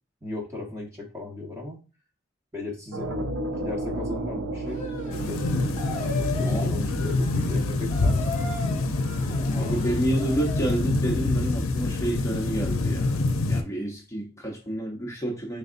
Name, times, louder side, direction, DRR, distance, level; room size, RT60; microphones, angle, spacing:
voice 1, 0.2-1.8 2.5-3.3 3.6-5.7 6.0-8.3 9.2-9.9, left 2 dB, 15° right, 1.0 m, -37 dB
sound 1, 2.9-8.8, right 1 dB, 75° right, 0.6 m, -34 dB
sound 2, 4.7-10.8, left 3 dB, 35° left, 0.9 m, -38 dB
sound 3, 5.1-13.6, left 2 dB, 85° left, 0.5 m, -26 dB
voice 2, 6.4-6.8 9.5-13.2 13.5-15.6, right 1 dB, 15° left, 0.8 m, -29 dB
4.0 x 3.5 x 2.5 m
head